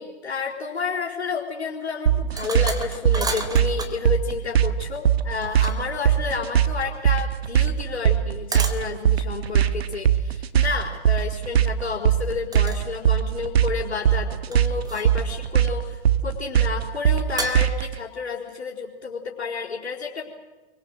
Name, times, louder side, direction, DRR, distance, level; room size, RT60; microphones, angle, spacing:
voice 1, 0.0-20.3, left 5 dB, 75° left, -5 dB, 4.5 m, -31 dB
sound 1, 2.1-17.9, right 9 dB, 70° right, 1.4 m, -21 dB
sound 2, 2.3-4.0 5.3-6.0 8.5-8.9 10.6-10.9 12.5-12.8 13.2-13.8 14.5-15.3 17.4-17.9, right 3 dB, 10° right, 2.9 m, -33 dB
26.5 x 24.0 x 7.8 m, 1.2 s
figure-of-eight pair, 100°, 32 cm